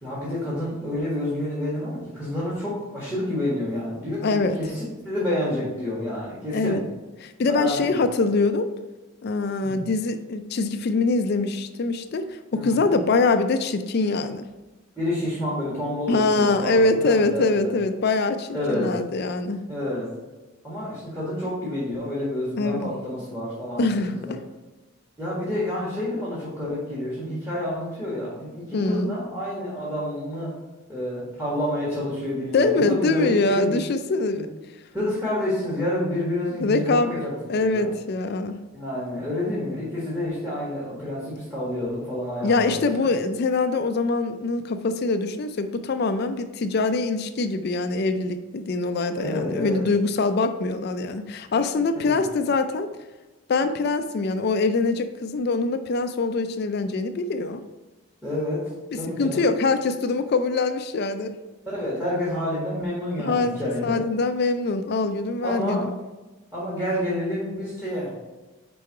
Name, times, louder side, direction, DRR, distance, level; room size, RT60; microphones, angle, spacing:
voice 1, 0.0-6.8 7.5-8.0 9.6-9.8 12.5-12.9 14.9-17.7 18.5-18.9 19.7-20.1 20.6-23.8 24.1-24.3 25.2-30.5 30.9-33.8 34.3-34.4 34.9-37.9 38.7-43.1 49.1-49.9 51.9-52.2 58.2-58.6 58.9-59.4 61.6-64.0 65.4-65.9 66.5-68.1, left 1 dB, 10° right, -9 dB, 1.6 m, -29 dB
voice 2, 4.2-4.6 6.5-6.8 7.2-8.7 9.2-14.5 16.1-19.6 22.6-22.9 23.8-24.4 28.7-29.1 32.5-34.5 36.6-37.2 37.5-38.6 42.4-52.9 53.5-57.6 58.9-61.3 63.2-63.6 63.8-65.9, left 3 dB, 45° left, 9 dB, 0.4 m, -23 dB
5.0 x 4.6 x 4.6 m, 1.1 s
head